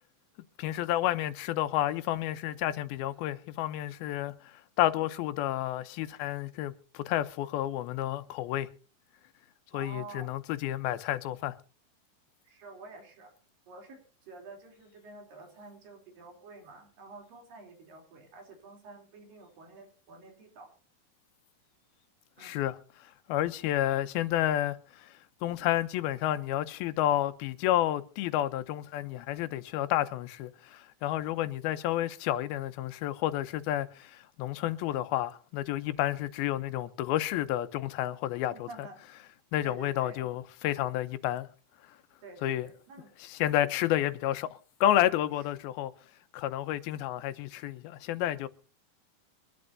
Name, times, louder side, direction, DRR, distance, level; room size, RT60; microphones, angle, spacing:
voice 1, 0.6-4.3 4.8-8.7 9.7-11.6 22.4-22.8 23.3-25.1 25.4-38.9 39.5-41.5 42.4-42.7 43.2-45.9 46.3-48.5, left 13 dB, 85° left, 2.7 m, -30 dB
voice 2, 9.7-10.4 12.4-13.3 13.7-14.0 14.3-20.7 22.4-22.6 38.5-39.0 39.6-40.3 42.2-43.1, right 3 dB, 70° right, 4.9 m, -49 dB
24.0 x 12.0 x 2.7 m
omnidirectional pair, 4.2 m